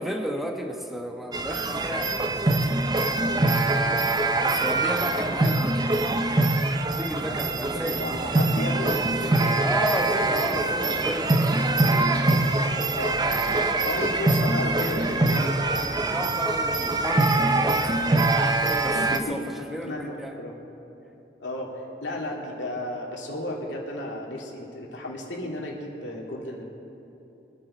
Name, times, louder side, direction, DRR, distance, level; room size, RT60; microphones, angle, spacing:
voice 1, 0.0-2.1 4.4-5.9 6.9-8.0 9.6-12.5 15.9-19.4 19.7-20.3, equal, ahead, 2 dB, 1.2 m, -33 dB
sound 1, 1.3-19.2, right 2 dB, 25° right, 0.6 m, -24 dB
voice 2, 7.7-9.6 10.4-10.6 12.9-13.2 13.8-15.6 18.6-19.4 19.9-20.6 21.4-26.6, left 1 dB, 90° left, -1 dB, 2.5 m, -34 dB
23.5 x 10.5 x 4.3 m, 3.0 s
head